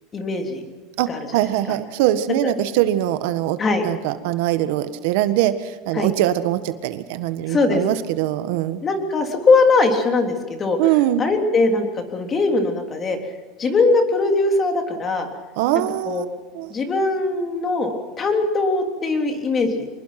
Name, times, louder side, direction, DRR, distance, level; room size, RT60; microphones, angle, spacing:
voice 1, 0.1-0.6 1.1-1.2 1.7-1.8 2.4-2.5 3.6-3.8 5.9-6.1 7.5-7.8 8.8-10.8 11.2-13.2 13.6-15.3 16.0-16.2 16.7-20.0, left 3 dB, 25° left, 5 dB, 3.4 m, -20 dB
voice 2, 1.0-3.6 3.8-8.8 10.8-11.2 15.6-16.2 16.5-16.7, right 13 dB, 70° right, 11 dB, 1.5 m, -22 dB
25.5 x 21.0 x 6.0 m, 1.3 s
supercardioid pair, 140°, 0 cm